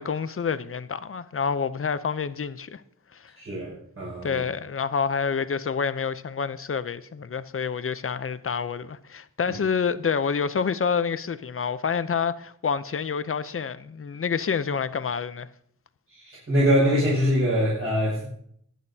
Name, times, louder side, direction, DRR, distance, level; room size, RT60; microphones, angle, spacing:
voice 1, 0.0-2.8 3.1-3.3 4.2-15.5, left 6 dB, 40° left, 0.6 m, -28 dB
voice 2, 3.4-4.4 9.5-9.6 16.1-18.3, equal, 45° right, 5.6 m, -24 dB
21.0 x 10.0 x 2.8 m
wide cardioid pair, 115°, 32 cm